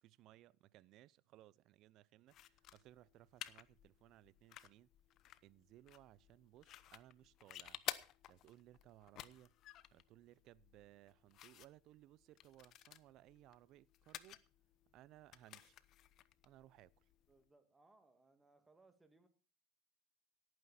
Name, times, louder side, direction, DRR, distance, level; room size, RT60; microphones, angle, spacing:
voice 1, 0.0-4.9 5.4-7.8 8.3-9.5 9.9-14.4 14.9-15.8 16.4-17.1, right 14 dB, 50° right, 0.6 m, -63 dB
sound 1, 2.3-17.4, left 12 dB, 45° left, 0.8 m, -54 dB
voice 2, 17.3-19.3, right 3 dB, 10° right, 2.3 m, -69 dB
17.5 x 9.4 x 4.3 m
supercardioid pair, 120°, 0 cm